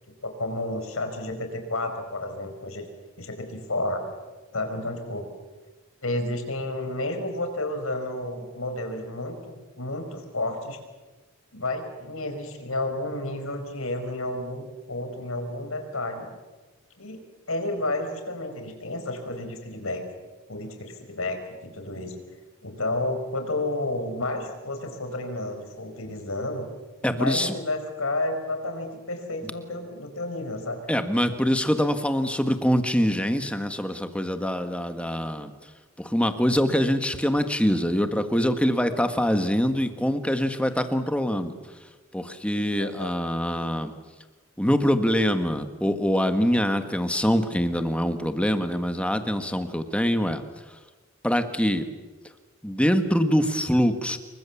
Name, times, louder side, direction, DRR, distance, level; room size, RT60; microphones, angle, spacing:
voice 1, 0.2-2.9 3.2-4.0 4.5-5.2 6.0-10.8 11.5-16.3 17.0-17.2 17.5-20.0 20.5-21.4 21.6-22.1 22.6-26.7 27.1-30.8 42.8-43.1, left 2 dB, 80° left, 6 dB, 4.7 m, -31 dB
voice 2, 27.0-27.5 30.9-35.5 36.0-41.6 42.1-43.9 44.6-50.4 51.2-51.9 52.6-54.2, equal, 5° left, 8 dB, 1.6 m, -24 dB
28.0 x 23.0 x 7.3 m, 1.2 s
head